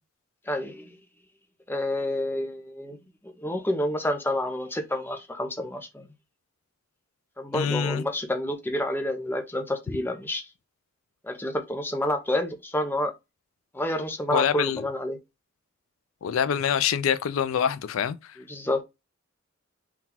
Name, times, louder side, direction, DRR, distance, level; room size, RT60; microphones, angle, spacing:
voice 1, 0.5-0.9 1.7-3.0 3.4-6.1 7.4-10.5 11.2-13.1 13.7-15.2 18.5-18.8, left 1 dB, 10° left, 0.6 m, -29 dB
voice 2, 7.5-8.0 14.3-14.8 16.2-18.3, left 8 dB, 80° left, 0.4 m, -25 dB
3.8 x 2.3 x 4.2 m
head